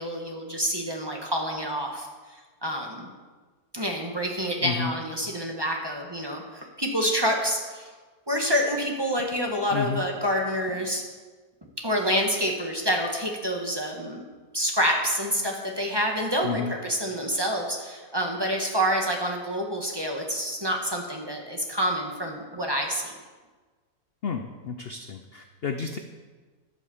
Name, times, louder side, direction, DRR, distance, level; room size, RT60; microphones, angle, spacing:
voice 1, 0.0-2.1 2.6-3.1 3.7-7.9 8.3-11.0 11.8-14.2 14.5-23.1, equal, 15° right, 1 dB, 1.4 m, -27 dB
voice 2, 4.6-4.9 9.7-10.1 16.4-16.7 24.2-26.0, left 6 dB, 60° left, 6 dB, 0.6 m, -31 dB
10.5 x 8.3 x 7.1 m, 1.4 s
omnidirectional pair, 1.9 m